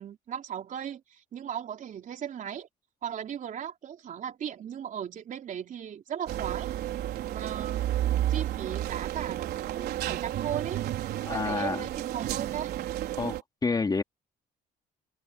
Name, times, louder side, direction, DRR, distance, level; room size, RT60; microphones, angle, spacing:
voice 1, 0.0-2.7 3.0-6.7 7.3-7.8 8.3-10.8 11.3-12.7, right 9 dB, 50° right, 3.8 m, -37 dB
sound 1, 6.3-13.4, right 13 dB, 70° right, 4.3 m, -31 dB
voice 2, 11.2-11.8 13.2-14.0, left 4 dB, 25° left, 3.6 m, -29 dB
cardioid pair, 110°, 17 cm